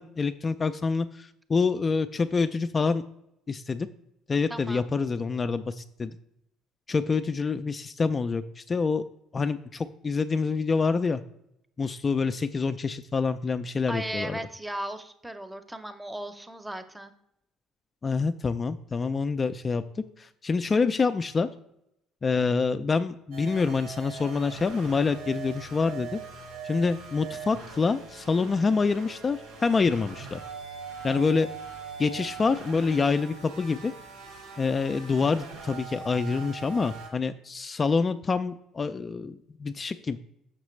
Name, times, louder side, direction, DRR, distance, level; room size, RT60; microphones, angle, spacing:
voice 1, 0.0-3.0 3.5-3.9 4.3-6.2 6.9-9.0 9.3-11.2 11.8-14.4 18.0-19.8 20.2-21.5 22.2-26.2 26.6-30.4 31.0-31.5 32.0-33.9 34.6-40.2, left 4 dB, 30° left, 10 dB, 0.3 m, -26 dB
voice 2, 4.5-4.9 13.9-17.1, right 1 dB, 10° right, 10 dB, 0.7 m, -36 dB
sound 1, 23.3-37.1, right 5 dB, 85° right, 1.6 m, -42 dB
6.2 x 5.9 x 3.1 m, 0.81 s
supercardioid pair, 80°, 0 cm